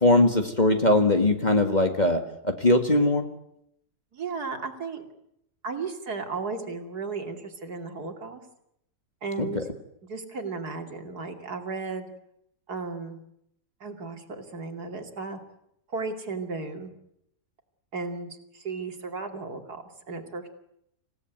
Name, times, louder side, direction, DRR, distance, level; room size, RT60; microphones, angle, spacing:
voice 1, 0.0-3.3 9.4-9.6, left 2 dB, 25° left, 5 dB, 2.0 m, -21 dB
voice 2, 4.1-5.0 5.6-8.4 9.2-9.7 10.0-12.1 12.7-13.2 13.8-15.4 15.9-16.9 17.9-20.5, right 4 dB, 70° right, 5 dB, 3.2 m, -35 dB
26.5 x 16.5 x 9.3 m, 0.77 s
omnidirectional pair, 1.8 m